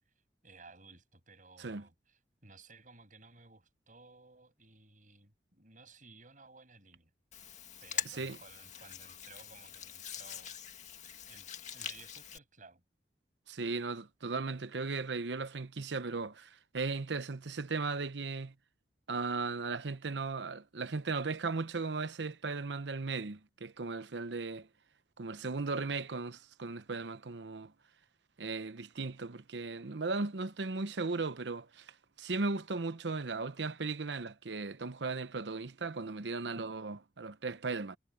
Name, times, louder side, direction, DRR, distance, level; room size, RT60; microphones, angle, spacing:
voice 1, 0.4-7.1 7.8-10.5 11.3-12.8, right 3 dB, 50° right, 7.2 m, -57 dB
Hands, 7.3-12.4, left 9 dB, 45° left, 2.0 m, -43 dB
voice 2, 8.1-8.4 13.5-18.5 19.1-24.7 25.2-27.7 28.4-38.0, right 3 dB, 85° right, 0.9 m, -37 dB
head